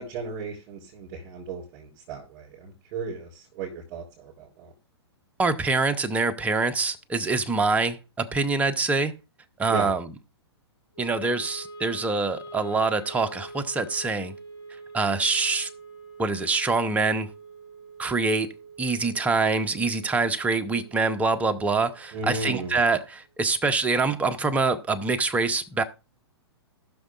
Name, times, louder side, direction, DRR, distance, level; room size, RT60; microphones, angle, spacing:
voice 1, 0.0-4.7 9.7-9.9 22.1-22.8, right 4 dB, 35° right, 3.3 m, -35 dB
voice 2, 5.4-9.1 9.6-10.1 11.0-14.3 14.9-15.7 16.2-17.3 18.0-18.5 18.8-25.8, right 3 dB, 10° right, 0.7 m, -25 dB
Wind instrument woodwind instrument, 10.9-23.2, right 3 dB, 80° left, 3.0 m, -45 dB
19.0 x 6.3 x 2.4 m
figure-of-eight pair, 110°, 14 cm